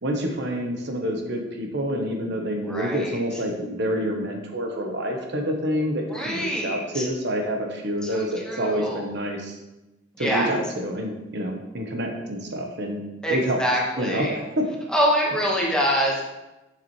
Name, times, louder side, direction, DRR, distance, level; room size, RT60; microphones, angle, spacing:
voice 1, 0.0-9.6 10.2-13.0 13.3-13.6 14.0-14.6, equal, 65° right, 2 dB, 1.1 m, -27 dB
voice 2, 2.6-3.2 6.1-7.1 8.0-9.0 10.1-10.5 13.2-14.3 14.9-16.2, equal, 5° left, -3 dB, 1.4 m, -25 dB
7.4 x 7.1 x 3.2 m, 1.0 s
head